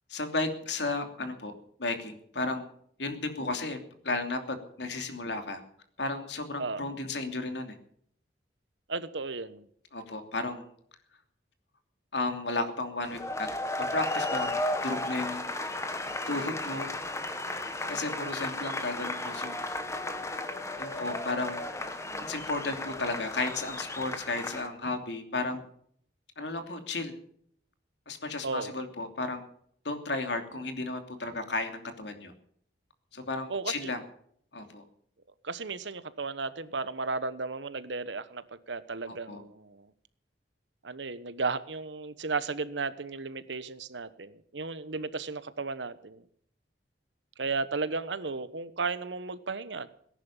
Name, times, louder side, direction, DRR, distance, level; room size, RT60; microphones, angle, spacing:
voice 1, 0.1-1.5 1.8-2.7 3.0-3.8 4.0-5.6 6.0-7.7 9.9-10.7 12.1-13.5 13.9-15.4 16.3-16.9 17.9-19.6 20.8-21.6 22.3-25.6 26.4-27.1 28.1-29.5 29.8-32.3 33.1-34.0 34.5-34.8 39.1-39.4, left 2 dB, 75° left, 7 dB, 2.9 m, -33 dB
voice 2, 8.9-9.7 28.4-28.7 33.5-33.9 35.4-39.9 40.8-46.2 47.4-49.9, right 4 dB, 85° right, 14 dB, 1.2 m, -34 dB
sound 1, 13.0-24.7, left 2 dB, 15° left, 1.5 m, -34 dB
18.0 x 10.5 x 7.3 m, 0.64 s
head